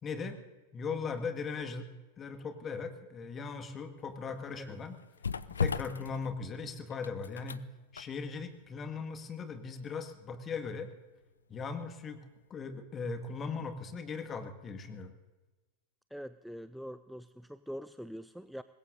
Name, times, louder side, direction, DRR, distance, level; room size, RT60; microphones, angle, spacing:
voice 1, 0.0-0.4 0.7-1.9 2.2-5.0 5.5-7.6 7.9-10.9 11.5-12.2 12.5-15.1, left 5 dB, 25° left, 6 dB, 1.8 m, -39 dB
sound 1, 4.0-11.9 12.3-12.4, left 5 dB, 75° left, 0.5 m, -40 dB
voice 2, 16.1-18.6, equal, ahead, 14 dB, 0.4 m, -44 dB
25.0 x 20.5 x 2.7 m, 1.2 s
figure-of-eight pair, 90°, 0 cm